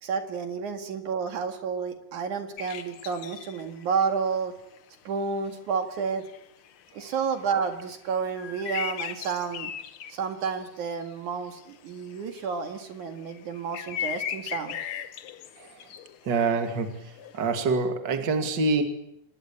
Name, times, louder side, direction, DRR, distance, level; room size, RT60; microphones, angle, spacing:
voice 1, 0.0-4.5 5.0-6.3 6.9-9.7 10.1-14.8, right 6 dB, 65° right, 6 dB, 3.3 m, -30 dB
sound 1, 2.6-4.0 4.4-4.5 4.8-4.9 5.2-5.5 5.9-11.1 11.4-17.7, left 9 dB, 60° left, 1.4 m, -38 dB
voice 2, 16.3-17.0 17.3-18.8, right 4 dB, 35° right, 7 dB, 2.8 m, -25 dB
26.0 x 21.0 x 8.8 m, 0.78 s
omnidirectional pair, 3.8 m